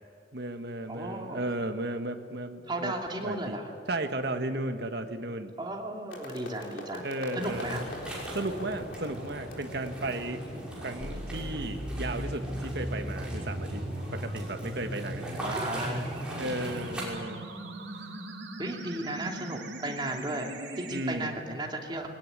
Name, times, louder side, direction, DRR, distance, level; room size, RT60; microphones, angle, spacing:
voice 1, 0.3-2.9 3.2-3.6 3.9-5.5 7.0-7.9 8.3-10.4 10.8-13.8 14.1-15.6 16.3-17.5 20.9-21.4, right 2 dB, 60° right, 6 dB, 1.5 m, -34 dB
voice 2, 0.9-1.5 2.7-3.7 5.6-7.1 7.4-7.9 15.4-16.6 18.6-22.1, right 1 dB, 25° right, 1 dB, 2.7 m, -35 dB
sound 1, 6.1-12.0, left 1 dB, 90° left, 3.6 m, -44 dB
sound 2, 7.4-17.0, right 1 dB, 5° right, 5.9 m, -38 dB
sound 3, 11.0-21.0, right 1 dB, 80° right, 3.2 m, -39 dB
22.0 x 18.0 x 9.9 m, 2.3 s
head